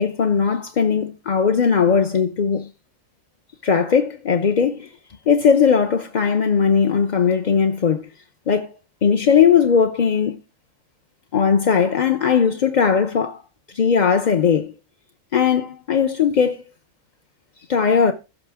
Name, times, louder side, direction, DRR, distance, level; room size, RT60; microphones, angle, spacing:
voice 1, 0.0-2.7 3.6-4.9 5.3-8.1 8.5-8.7 9.0-10.3 11.3-13.4 13.7-14.7 15.3-16.6 17.7-18.1, left 6 dB, 45° left, 0.6 m, -18 dB
16.0 x 6.0 x 3.6 m
omnidirectional pair, 1.6 m